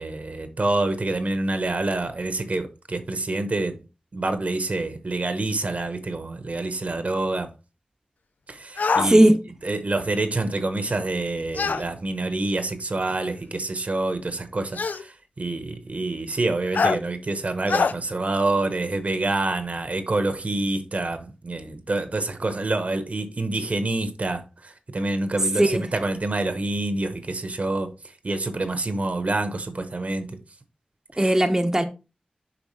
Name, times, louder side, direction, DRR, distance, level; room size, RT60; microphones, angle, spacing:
voice 1, 0.0-3.7 4.1-7.5 8.5-9.3 9.6-15.1 15.4-24.4 24.9-27.9 28.2-30.3 31.2-31.3, right 2 dB, 55° right, 1.0 m, -27 dB
sound 1, 8.8-9.1 11.5-11.8 13.1-13.2 14.8-15.0 16.7-17.0 17.7-17.9, left 5 dB, 90° left, 0.4 m, -23 dB
voice 2, 9.0-9.4 25.6-25.9 31.2-31.8, right 1 dB, 20° right, 0.8 m, -18 dB
7.1 x 5.0 x 3.2 m
wide cardioid pair, 55°, 3 cm